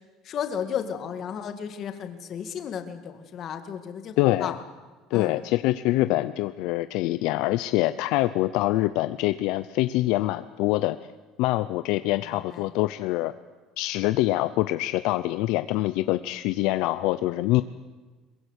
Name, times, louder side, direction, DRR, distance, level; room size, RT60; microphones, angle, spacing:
voice 1, 0.2-4.6 5.1-5.4 6.1-6.3 12.2-12.7, left 8 dB, 35° left, 8 dB, 2.0 m, -34 dB
voice 2, 4.2-4.5 5.1-11.0 11.4-13.3 13.8-17.6, left 17 dB, 65° left, 12 dB, 0.6 m, -25 dB
23.0 x 22.0 x 8.2 m, 1.3 s
cardioid pair, 175°, 0 cm